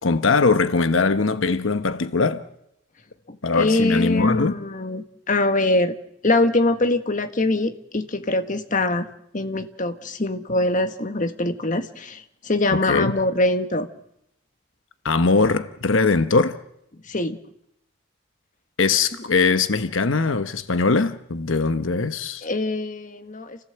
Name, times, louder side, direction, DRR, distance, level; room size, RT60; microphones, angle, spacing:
voice 1, 0.0-2.4 3.4-4.6 12.7-13.1 15.0-16.6 18.8-22.5, left 4 dB, 85° left, 1.0 m, -21 dB
voice 2, 3.3-5.9 6.2-9.1 9.3-13.9 17.1-17.4 22.4-23.6, left 2 dB, 40° left, 1.4 m, -23 dB
29.0 x 15.5 x 7.9 m
head